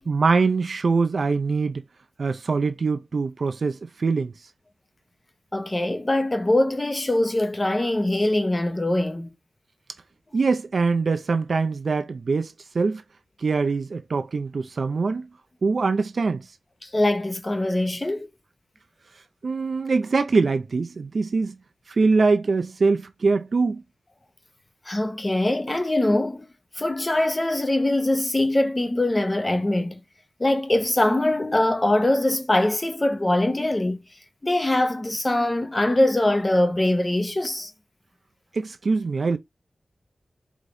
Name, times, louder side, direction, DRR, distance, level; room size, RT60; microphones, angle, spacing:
voice 1, 0.1-1.8 2.2-4.3 10.3-13.0 13.4-15.3 15.6-16.5 19.4-21.6 21.9-23.8 38.5-39.4, right 4 dB, 60° right, 0.5 m, -23 dB
voice 2, 5.5-9.3 16.8-18.3 24.9-26.5 26.8-30.0 30.4-34.0 34.4-37.7, left 1 dB, 25° left, 0.8 m, -22 dB
4.8 x 3.0 x 2.6 m
wide cardioid pair, 105°, 0 cm